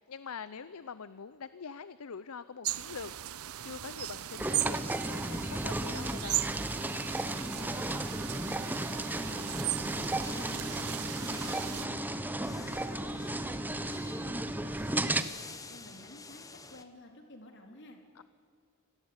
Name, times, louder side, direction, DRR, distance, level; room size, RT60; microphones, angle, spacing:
voice 1, 0.0-3.1 3.4-6.4 12.3-12.8 18.1-18.2, left 6 dB, 70° left, 15 dB, 0.6 m, -44 dB
sound 1, 2.6-11.9, right 14 dB, 70° right, 0.6 m, -37 dB
sound 2, 3.9-16.8, left 3 dB, 15° left, 1.1 m, -52 dB
sound 3, 4.4-15.2, right 1 dB, 10° right, 0.9 m, -34 dB
voice 2, 7.3-12.0 12.5-15.3 15.7-18.0, left 1 dB, 55° left, 4 dB, 3.8 m, -52 dB
26.0 x 19.0 x 9.7 m, 2.4 s
head